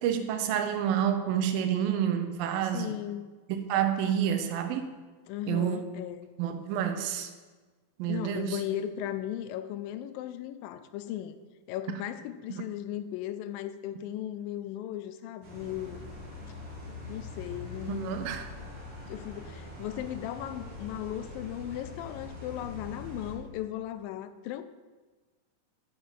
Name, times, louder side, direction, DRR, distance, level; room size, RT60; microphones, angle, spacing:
voice 1, 0.0-2.9 3.5-4.9 5.5-5.8 6.4-7.3 8.0-8.6 12.5-12.6 17.8-18.5, right 9 dB, 90° right, 7 dB, 2.5 m, -29 dB
voice 2, 2.7-3.3 5.3-6.3 8.1-11.4 11.7-16.0 17.1-18.2 19.1-24.6, left 12 dB, 85° left, 11 dB, 2.3 m, -37 dB
sound 1, 15.4-23.3, left 2 dB, 45° right, 2.3 m, -43 dB
8.6 x 5.7 x 5.7 m, 1.3 s
omnidirectional pair, 3.9 m